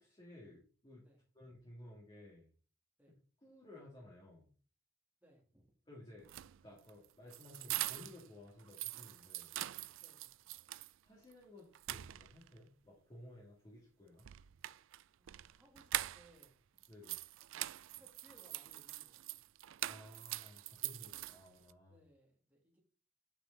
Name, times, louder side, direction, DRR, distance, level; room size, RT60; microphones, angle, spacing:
voice 1, 0.0-1.0 1.3-2.5 3.1-4.5 5.9-6.3 6.6-9.5 11.0-14.3 16.9-17.2 19.9-22.0, left 1 dB, 25° left, -4 dB, 2.8 m, -56 dB
voice 2, 5.2-5.7 10.0-10.3 15.2-16.6 17.9-19.4 21.0-21.3 21.9-22.8, right 1 dB, 10° right, -1 dB, 3.0 m, -66 dB
sound 1, 6.2-8.3 8.6-10.9 11.3-11.4 11.7-12.6 14.2-16.5 16.8-21.7, right 16 dB, 70° right, 0.3 m, -43 dB
9.1 x 5.8 x 4.0 m, 0.39 s
head